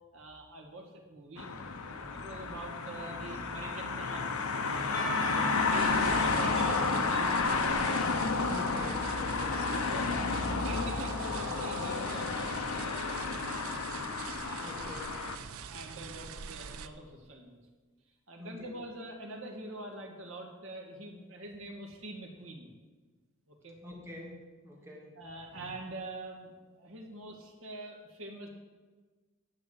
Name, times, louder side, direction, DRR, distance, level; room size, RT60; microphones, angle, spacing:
voice 1, 0.1-1.5 1.7-5.3 5.5-7.6 8.0-8.2 9.9-13.6 14.4-14.9 15.7-17.6 18.3-22.7 23.5-23.8 25.2-28.5, right 1 dB, 65° right, 1 dB, 2.3 m, -45 dB
sound 1, 1.4-15.4, left 4 dB, 85° left, 0.9 m, -31 dB
Percussion / Church bell, 4.9-10.2, right 2 dB, 40° left, 2.8 m, -39 dB
sound 2, 5.7-16.9, right 7 dB, 85° right, 0.6 m, -44 dB
voice 2, 8.4-10.4 14.6-15.2 18.4-18.7 23.8-25.1, left 1 dB, 10° right, -2 dB, 2.4 m, -47 dB
10.5 x 7.0 x 8.0 m, 1.3 s
head